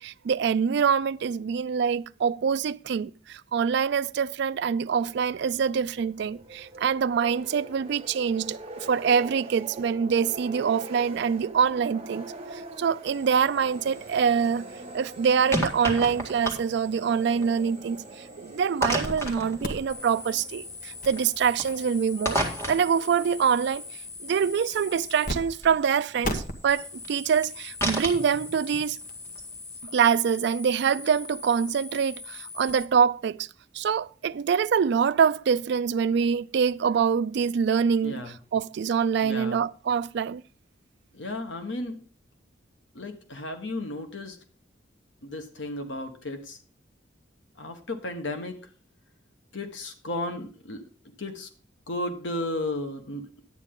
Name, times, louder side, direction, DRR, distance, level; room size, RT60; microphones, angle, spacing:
voice 1, 0.0-14.7 14.9-22.4 22.7-23.8 24.2-29.0 29.9-33.5 33.7-38.2 38.5-40.4, right 6 dB, 65° right, 0.3 m, -25 dB
sound 1, 5.0-24.0, right 2 dB, 35° right, 1.1 m, -44 dB
sound 2, 13.1-29.8, equal, 15° left, 1.9 m, -36 dB
sound 3, 19.0-19.3 19.6-25.4 25.6-25.7 26.2-32.9, left 2 dB, 50° left, 1.3 m, -39 dB
voice 2, 38.0-38.4 39.2-39.6 41.1-42.0 42.9-44.4 45.2-46.6 47.6-48.6 49.5-50.9 51.2-51.5 51.9-53.2, left 1 dB, 85° left, 1.2 m, -34 dB
10.5 x 9.0 x 3.7 m
head